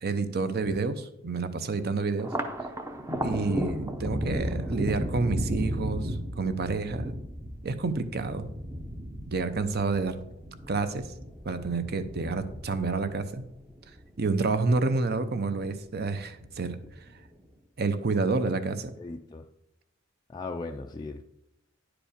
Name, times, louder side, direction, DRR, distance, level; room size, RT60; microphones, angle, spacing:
voice 1, 0.0-2.3 3.2-7.1 7.6-8.5 9.3-10.2 10.7-11.0 11.4-13.4 14.2-16.8 17.8-18.9, right 3 dB, 50° right, 10 dB, 0.7 m, -29 dB
Thunder, 2.2-14.9 15.2-16.1 16.4-17.2, equal, 15° right, 0.6 m, -35 dB
voice 2, 19.0-19.4 20.3-21.2, left 3 dB, 20° left, 3 dB, 0.3 m, -38 dB
10.0 x 5.0 x 5.1 m, 0.84 s
head